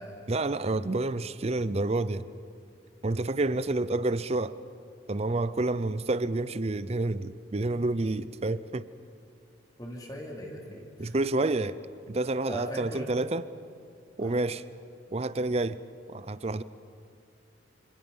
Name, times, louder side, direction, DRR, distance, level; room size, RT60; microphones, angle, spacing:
voice 1, 0.3-2.2 3.0-4.6 5.1-8.9 11.0-11.8 12.1-13.4 14.2-14.6 15.1-15.8 16.1-16.6, right 2 dB, 35° right, 15 dB, 0.6 m, -29 dB
voice 2, 9.8-11.2 12.5-13.1 14.2-14.4, equal, 20° left, -1 dB, 2.9 m, -40 dB
26.5 x 26.0 x 5.5 m, 2.5 s
head